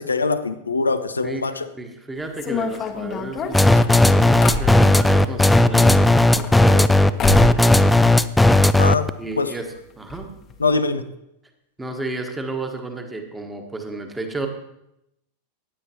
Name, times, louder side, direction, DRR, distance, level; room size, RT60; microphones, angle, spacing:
voice 1, 0.0-1.7 8.8-9.1 9.4-9.5 10.6-11.0, left 4 dB, 75° left, 10 dB, 0.6 m, -22 dB
voice 2, 1.7-8.2 9.2-10.3 11.8-14.5, right 2 dB, 10° right, 4 dB, 1.5 m, -32 dB
sound 1, 2.3-5.3 6.1-6.9 7.2-7.7 7.9-8.7 9.0-9.1 9.3-9.4 10.1-10.2 10.5-10.7, left 3 dB, 30° left, 1.1 m, -27 dB
sound 2, 3.5-9.1, left 2 dB, 5° left, 0.4 m, -14 dB
16.0 x 9.9 x 2.9 m, 0.83 s
figure-of-eight pair, 90°, 0 cm